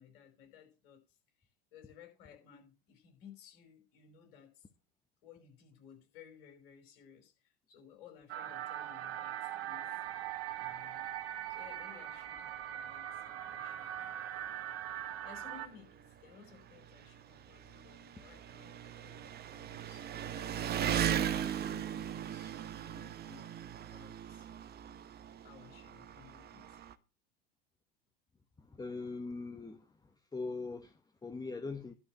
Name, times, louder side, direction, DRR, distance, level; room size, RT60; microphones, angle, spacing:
voice 1, 0.0-4.7 5.2-9.9 10.6-11.1 11.5-14.4 15.2-24.5 25.4-26.8, left 8 dB, 60° left, 5.2 m, -58 dB
sound 1, 8.3-15.7, right 11 dB, 55° right, 1.4 m, -41 dB
Engine, 12.4-12.5 12.9-13.0 13.9-14.0 14.2-26.9, right 9 dB, 35° right, 1.1 m, -39 dB
voice 2, 28.6-29.9 30.3-31.9, left 3 dB, 15° left, 1.1 m, -41 dB
11.5 x 5.2 x 7.7 m
figure-of-eight pair, 75°, 29 cm